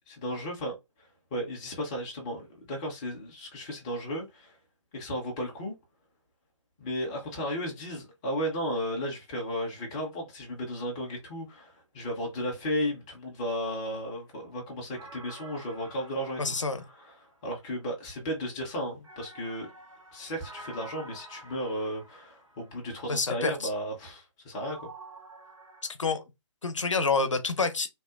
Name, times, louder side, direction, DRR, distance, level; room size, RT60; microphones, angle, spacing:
voice 1, 0.1-0.7 1.3-4.6 4.9-5.8 6.8-16.4 17.0-19.7 20.1-24.9, equal, 10° left, 0.3 m, -34 dB
sound 1, 14.9-17.7 19.0-22.9 24.5-25.9, right 2 dB, 90° right, 1.0 m, -49 dB
voice 2, 16.4-16.8 23.1-23.7 25.9-26.2 26.6-27.9, left 4 dB, 70° left, 0.5 m, -28 dB
2.7 x 2.1 x 2.2 m
figure-of-eight pair, 140°, 16 cm